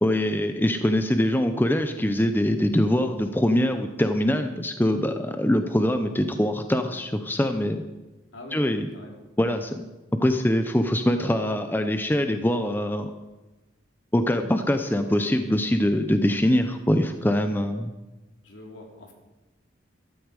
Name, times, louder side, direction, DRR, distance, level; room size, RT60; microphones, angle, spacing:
voice 1, 0.0-7.8 8.5-8.9 9.4-9.9 10.2-13.1 14.1-17.9, left 1 dB, 10° left, 7 dB, 0.6 m, -23 dB
voice 2, 8.3-8.6 8.9-9.2 18.4-19.1, left 1 dB, 80° left, 1 dB, 2.8 m, -44 dB
13.0 x 12.5 x 4.9 m, 1.1 s
head